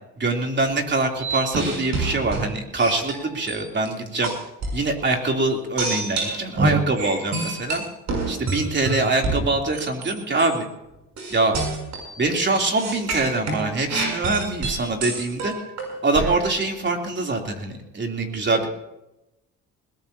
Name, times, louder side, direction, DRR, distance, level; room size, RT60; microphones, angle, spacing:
voice 1, 0.2-4.3 4.7-7.8 8.3-10.7 11.3-11.6 12.2-15.5 16.0-18.7, right 2 dB, 35° right, 2 dB, 3.4 m, -24 dB
sound 1, 1.2-3.9 4.2-4.8 5.8-10.1 10.4-10.6 11.2-12.3 12.8-16.4, right 3 dB, 65° right, 7.5 m, -27 dB
20.5 x 19.5 x 2.9 m, 0.89 s
cardioid pair, 90°, 30 cm